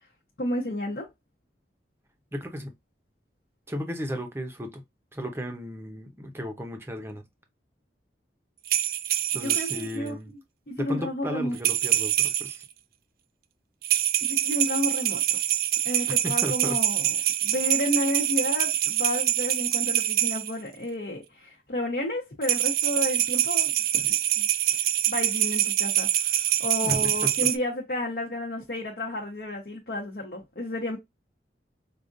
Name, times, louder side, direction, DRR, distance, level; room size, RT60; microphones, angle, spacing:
voice 1, 0.4-1.1 9.3-10.1 10.7-11.6 14.2-15.2 15.8-17.1 17.4-24.5 25.1-31.0, left 1 dB, 55° left, 0.8 m, -31 dB
voice 2, 2.3-2.7 3.7-4.8 5.1-7.2 9.3-10.3 10.8-12.6 16.1-16.8 26.8-27.3, equal, 15° right, 0.7 m, -34 dB
sound 1, 8.7-9.9 11.6-12.6 13.8-20.5 22.4-27.6, right 12 dB, 50° right, 0.3 m, -25 dB
4.9 x 2.4 x 2.5 m
head